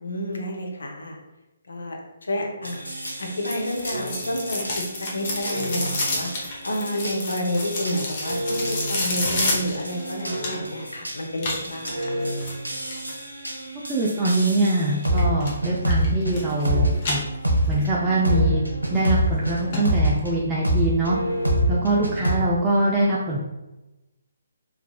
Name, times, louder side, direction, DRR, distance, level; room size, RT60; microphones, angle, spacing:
voice 1, 0.0-1.2 1.7-2.8 3.2-12.1, left 1 dB, 70° left, 1 dB, 0.6 m, -30 dB
sound 1, 2.6-20.3 20.6-22.3, right 1 dB, 90° right, 0.7 m, -27 dB
sound 2, 3.0-10.8 11.4-13.1 15.0-15.5 15.9-16.7 17.0-17.8 18.2-18.3 18.9-19.0 19.4-19.5 19.7-19.8 20.2-20.3, left 2 dB, 35° left, 0.8 m, -29 dB
voice 2, 13.9-17.3 17.7-18.6 18.9-21.2 21.7-23.4, right 2 dB, 15° right, -6 dB, 0.3 m, -23 dB
3.3 x 2.3 x 2.2 m, 1.0 s
figure-of-eight pair, 140°, 0 cm